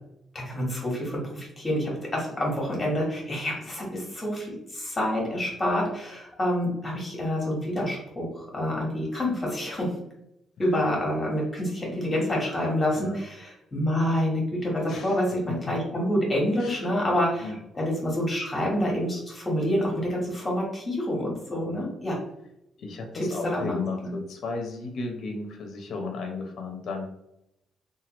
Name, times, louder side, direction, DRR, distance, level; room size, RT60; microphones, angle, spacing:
voice 1, 0.3-9.9 10.6-17.5 17.8-22.2 23.5-23.7 24.0-24.2, equal, 25° left, -3 dB, 1.2 m, -27 dB
voice 2, 14.9-15.2 16.6-16.9 17.4-17.6 21.6-21.8 22.8-27.1, left 3 dB, 65° left, 3 dB, 0.6 m, -34 dB
2.8 x 2.3 x 2.9 m, 0.84 s
cardioid pair, 90°, 0 cm